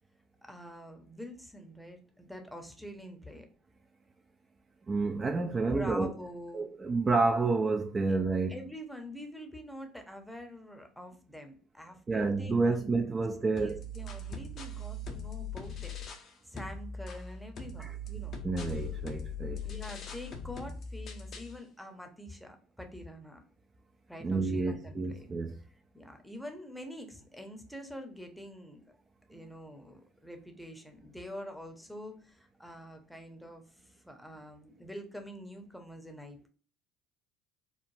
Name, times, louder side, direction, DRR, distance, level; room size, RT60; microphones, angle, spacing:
voice 1, 0.4-3.5 5.5-6.7 8.1-8.2 8.5-12.9 13.5-16.0 16.4-18.3 19.6-23.4 24.1-25.3 25.9-28.8 29.3-36.5, left 1 dB, 5° left, 0.7 m, -45 dB
voice 2, 4.9-6.1 6.5-8.6 12.1-13.8 17.8-17.9 18.4-19.7 24.2-25.6, right 3 dB, 30° right, 0.3 m, -29 dB
sound 1, 13.6-16.3 16.6-21.6, left 2 dB, 50° left, 0.6 m, -40 dB
3.1 x 2.1 x 2.6 m
hypercardioid pair, 75°, 0 cm